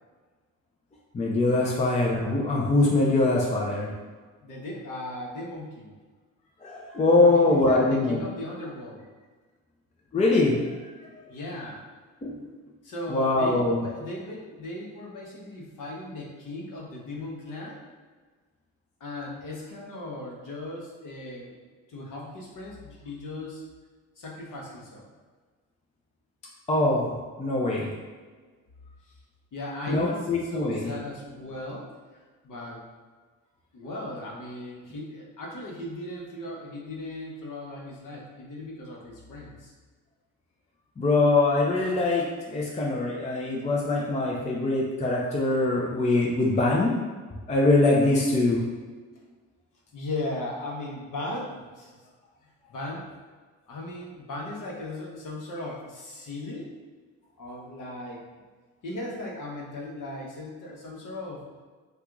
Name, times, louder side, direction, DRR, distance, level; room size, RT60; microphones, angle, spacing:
voice 1, 1.1-3.9 6.6-8.2 10.1-10.6 12.2-12.3 13.1-13.8 26.7-27.9 29.9-30.9 41.0-46.9 47.5-48.6, left 2 dB, 15° left, -3 dB, 0.6 m, -23 dB
voice 2, 4.4-5.9 7.2-9.0 11.3-11.8 12.8-17.8 19.0-21.6 21.9-23.6 24.2-25.1 29.5-32.8 33.7-39.7 49.9-51.9 52.7-53.1 53.7-56.7 57.4-58.2 58.8-61.4, left 1 dB, 45° left, -3 dB, 1.1 m, -37 dB
2.7 x 2.4 x 3.6 m, 1.4 s
hypercardioid pair, 50°, 42 cm